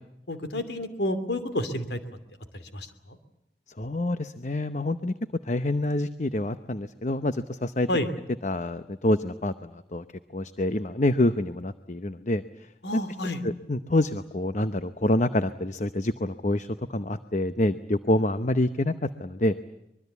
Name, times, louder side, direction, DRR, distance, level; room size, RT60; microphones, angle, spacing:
voice 1, 0.3-2.0 2.5-3.2 7.9-8.1 12.8-13.4, left 1 dB, 75° left, 10 dB, 2.8 m, -30 dB
voice 2, 3.8-5.1 5.4-7.9 8.4-10.0 10.3-12.4 12.9-13.0 13.4-19.6, left 1 dB, 40° left, 12 dB, 0.9 m, -27 dB
24.5 x 22.5 x 8.3 m, 0.86 s
head